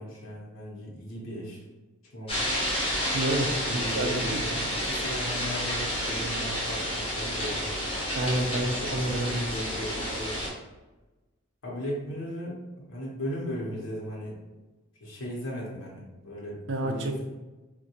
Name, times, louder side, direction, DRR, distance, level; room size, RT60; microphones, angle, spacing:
voice 1, 0.0-1.6 2.1-2.5 3.7-7.7 8.5-9.0 9.4-10.4 11.6-12.6 12.9-14.4 15.0-17.2, equal, 80° left, -4 dB, 0.7 m, -37 dB
sound 1, 2.3-10.5, equal, 30° left, 0.6 m, -30 dB
voice 2, 3.1-3.6 3.9-4.4 8.1-9.5 16.7-17.1, right 1 dB, 60° right, 3 dB, 0.4 m, -28 dB
3.5 x 2.1 x 2.8 m, 1.1 s
head